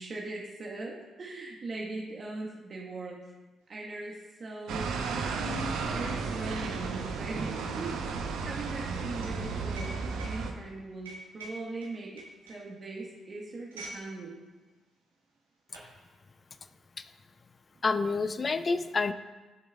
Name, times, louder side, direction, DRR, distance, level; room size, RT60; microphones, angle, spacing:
voice 1, 0.0-3.3 3.7-5.3 5.6-8.1 8.4-14.4, right 3 dB, 45° right, -2 dB, 1.3 m, -40 dB
sound 1, 3.8-3.9 4.1-14.1 14.4-14.6 15.3-15.9, right 2 dB, 85° right, 1.4 m, -49 dB
sound 2, 4.7-10.5, right 4 dB, 70° right, 0.7 m, -33 dB
voice 2, 17.8-19.1, left 4 dB, 40° left, 12 dB, 0.4 m, -28 dB
14.0 x 6.6 x 2.3 m, 1.2 s
hypercardioid pair, 40°, 0 cm